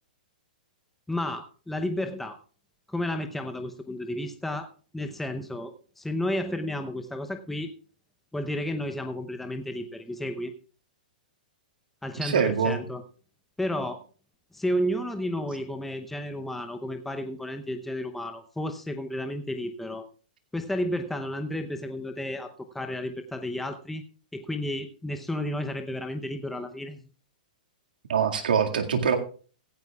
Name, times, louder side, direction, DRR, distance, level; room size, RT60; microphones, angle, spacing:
voice 1, 1.1-2.4 2.9-4.7 4.9-7.7 8.3-10.5 12.0-13.0 13.6-14.0 14.5-20.1 20.5-24.0 24.3-27.0, left 1 dB, 5° left, 6 dB, 0.8 m, -32 dB
voice 2, 12.2-12.8 28.1-29.2, right 6 dB, 85° right, 4 dB, 2.0 m, -24 dB
16.0 x 15.0 x 2.4 m, 0.39 s
hypercardioid pair, 135°, 5 cm